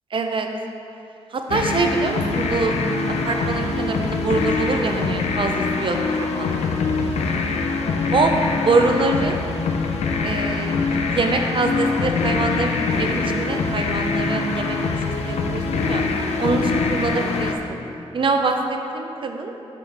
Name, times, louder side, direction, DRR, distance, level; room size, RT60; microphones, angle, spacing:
voice 1, 0.1-0.5 1.3-2.7 3.2-6.6 8.1-8.3 8.7-9.4 10.2-16.0 16.4-17.8 18.1-19.5, right 3 dB, 55° right, 4 dB, 0.6 m, -24 dB
sound 1, 1.5-17.5, left 4 dB, 90° left, 0.5 m, -23 dB
6.9 x 6.2 x 3.4 m, 2.8 s
cardioid pair, 65°, 11 cm